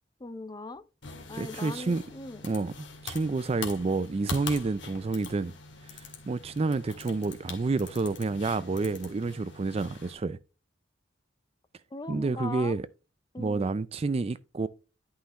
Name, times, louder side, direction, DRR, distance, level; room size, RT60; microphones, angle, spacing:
voice 1, 0.2-0.8 1.3-2.4 11.9-12.7 13.3-13.7, left 3 dB, 20° left, 0.6 m, -40 dB
sound 1, 1.0-10.1, left 5 dB, 70° left, 2.1 m, -44 dB
voice 2, 1.3-2.0 2.4-5.5 5.9-10.4 12.1-12.9 13.4-14.7, right 3 dB, 30° right, 0.4 m, -29 dB
11.0 x 5.7 x 3.0 m
head